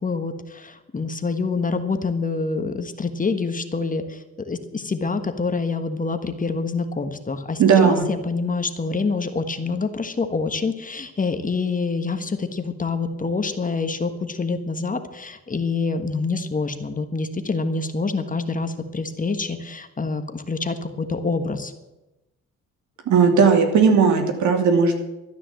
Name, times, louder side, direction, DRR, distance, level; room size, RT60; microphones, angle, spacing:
voice 1, 0.0-21.7, left 4 dB, 25° left, 8 dB, 1.4 m, -26 dB
voice 2, 7.6-8.0 23.1-24.9, right 5 dB, 70° right, 4 dB, 2.6 m, -16 dB
13.0 x 9.9 x 7.7 m, 1.0 s
cardioid pair, 90°, 30 cm